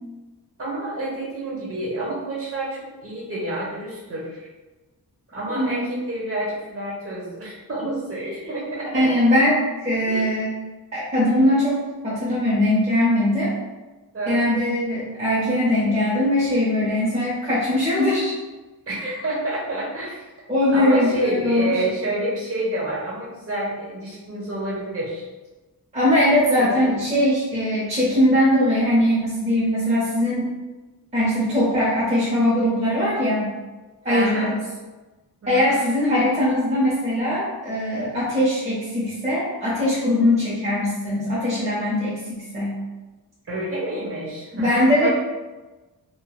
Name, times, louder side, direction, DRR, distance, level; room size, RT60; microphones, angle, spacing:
voice 1, 0.6-4.5 5.3-9.1 10.1-10.3 14.1-14.6 18.9-20.2 20.7-25.2 26.5-26.7 34.0-34.5 35.4-35.8 43.5-45.1, right 1 dB, 35° right, -5 dB, 0.9 m, -29 dB
voice 2, 5.5-5.9 8.2-8.6 8.9-10.5 10.9-13.5 14.3-18.3 19.0-19.1 20.5-21.8 25.9-30.5 31.1-33.5 34.0-34.6 35.5-42.8 44.5-45.1, left 1 dB, 15° right, -8 dB, 0.6 m, -21 dB
3.3 x 2.1 x 2.2 m, 1.2 s
wide cardioid pair, 125°, 38 cm